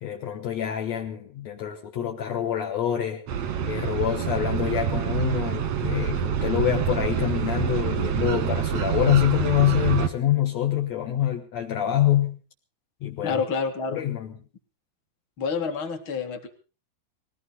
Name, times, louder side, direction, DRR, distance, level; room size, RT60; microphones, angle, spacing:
voice 1, 0.0-12.4 13.0-13.4 13.9-14.3, left 11 dB, 80° left, 2 dB, 1.6 m, -26 dB
sound 1, 3.3-10.1, right 9 dB, 70° right, 1.6 m, -26 dB
voice 2, 13.2-14.0 15.4-16.5, left 5 dB, 45° left, 4 dB, 1.8 m, -28 dB
20.0 x 16.5 x 4.1 m, 0.35 s
omnidirectional pair, 5.1 m